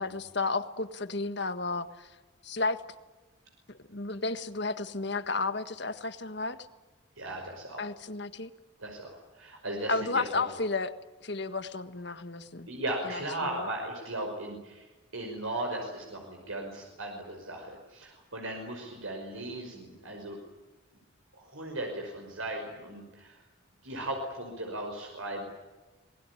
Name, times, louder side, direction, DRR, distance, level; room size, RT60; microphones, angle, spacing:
voice 1, 0.0-2.1 2.4-2.8 3.9-6.6 7.8-8.5 9.9-10.9 11.2-12.7 13.0-13.7, left 3 dB, 55° left, 11 dB, 1.6 m, -32 dB
voice 2, 7.2-7.9 8.8-10.5 12.7-20.4 21.3-23.5 23.8-25.4, right 1 dB, 80° right, 2 dB, 5.5 m, -37 dB
26.5 x 20.5 x 10.0 m, 1.2 s
head